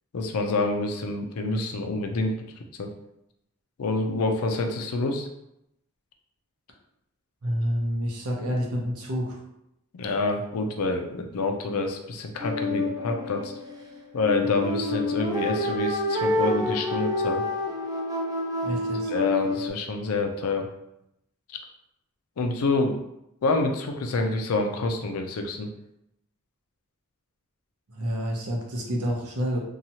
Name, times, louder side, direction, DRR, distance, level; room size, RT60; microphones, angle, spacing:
voice 1, 0.1-2.3 2.8-2.9 3.8-5.3 10.0-13.5 14.1-17.4 19.1-20.7 22.4-22.9 23.4-25.7, left 3 dB, 80° left, 4 dB, 0.4 m, -27 dB
voice 2, 7.4-9.4 18.6-19.1 27.9-29.6, equal, 90° right, -1 dB, 0.7 m, -28 dB
sound 1, 12.4-19.7, left 2 dB, 15° right, 0.4 m, -28 dB
2.9 x 2.3 x 2.7 m, 0.82 s
head